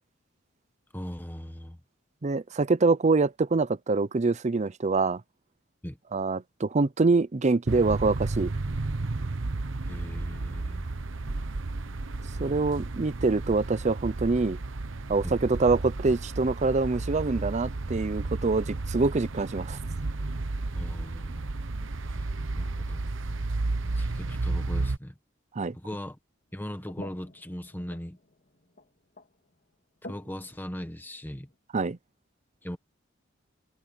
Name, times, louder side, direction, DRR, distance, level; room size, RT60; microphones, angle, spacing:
voice 1, 0.9-1.8 5.8-6.0 9.9-10.9 15.2-15.4 20.7-21.4 22.0-22.3 22.5-23.0 23.9-25.2 25.7-26.2 26.5-28.2 30.0-31.5 32.6-32.8, equal, 10° left, 1.5 m, -39 dB
voice 2, 2.2-5.2 6.1-8.5 12.4-14.6 15.1-19.8 25.6-25.7 31.7-32.0, right 3 dB, 35° right, 0.6 m, -25 dB
sound 1, 7.7-25.0, right 2 dB, 70° right, 1.0 m, -32 dB
sound 2, 19.0-20.9 21.3-21.4 23.3-23.4 24.1-24.2 25.8-25.9 26.5-31.6, left 2 dB, 50° left, 3.1 m, -51 dB
head